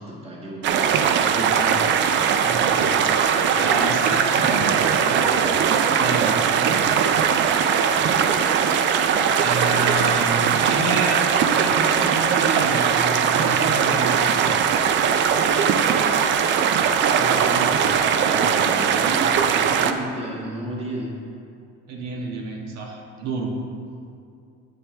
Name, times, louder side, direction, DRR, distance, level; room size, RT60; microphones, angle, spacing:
voice 1, 0.0-1.8 7.8-8.7 17.0-21.2, right 1 dB, 20° right, -3 dB, 1.5 m, -34 dB
sound 1, 0.6-19.9, right 7 dB, 40° right, 0.4 m, -20 dB
voice 2, 2.4-2.9 3.2-5.5 5.8-6.8 9.4-14.3 21.9-23.5, right 2 dB, 60° right, 0 dB, 1.5 m, -29 dB
9.7 x 8.0 x 3.3 m, 2.4 s
cardioid pair, 170°, 30 cm